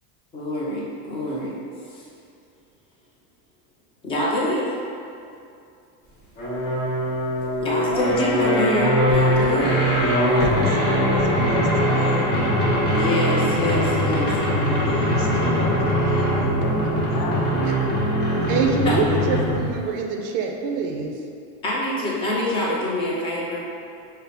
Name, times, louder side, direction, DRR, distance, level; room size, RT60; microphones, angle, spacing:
voice 1, 0.3-1.6 1.9-2.0 4.0-4.6 7.6-9.6 12.9-14.3 18.8-19.0 21.6-23.6, left 1 dB, 15° left, -5 dB, 0.4 m, -25 dB
sound 1, 6.4-19.7, equal, 30° left, 1.1 m, -21 dB
voice 2, 7.4-9.1 9.4-9.8 10.2-12.3 14.2-17.5, left 3 dB, 85° left, 1 dB, 0.8 m, -33 dB
voice 3, 18.5-21.2, right 5 dB, 45° right, 2 dB, 0.5 m, -24 dB
5.5 x 2.1 x 3.9 m, 2.5 s
supercardioid pair, 155°, 44 cm